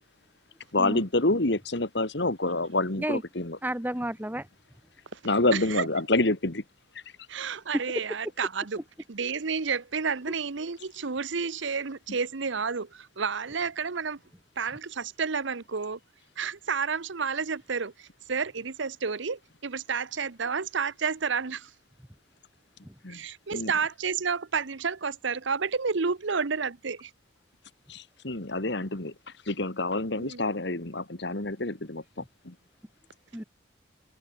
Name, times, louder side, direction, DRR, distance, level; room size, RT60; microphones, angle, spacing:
voice 1, 0.7-3.6 5.2-6.6 23.0-23.2 23.5-23.7 27.9-29.1 29.5-32.6, left 2 dB, 60° left, 1.9 m, -27 dB
voice 2, 3.6-4.5 22.8-22.9 33.3-33.4, right 1 dB, 10° right, 2.0 m, -31 dB
voice 3, 5.5-5.9 7.3-8.8 9.1-14.2 14.6-16.0 16.4-21.7 23.1-27.1 30.1-30.4, right 5 dB, 70° right, 0.9 m, -30 dB
head